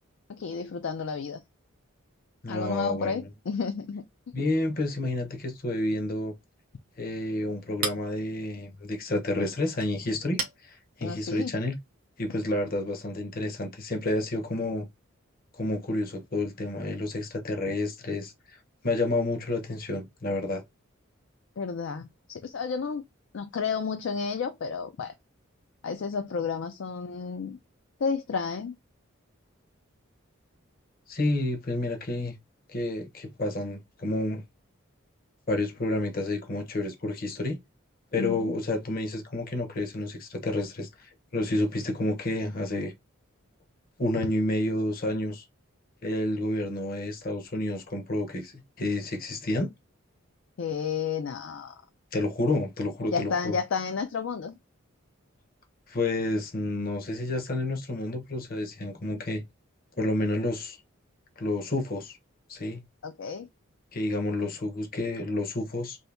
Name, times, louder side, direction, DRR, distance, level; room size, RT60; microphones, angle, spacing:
voice 1, 0.3-1.4 2.5-4.0 11.0-11.5 21.6-23.0 23.3-25.1 25.8-27.6 28.0-28.7 38.2-38.5 50.6-51.7 53.1-54.6 63.0-63.5, left 5 dB, 65° left, 0.4 m, -31 dB
voice 2, 2.4-3.3 4.3-6.3 7.0-11.8 12.2-14.9 15.6-18.6 18.8-20.6 31.1-32.3 32.7-34.4 35.5-37.6 38.1-42.9 44.0-45.4 46.0-49.7 52.1-53.6 55.9-59.4 60.0-60.8 61.4-62.2 62.5-62.8 63.9-66.0, left 2 dB, 45° left, 0.8 m, -30 dB
Chink clink, 6.5-12.1, right 5 dB, 45° right, 0.6 m, -40 dB
2.7 x 2.7 x 3.3 m
head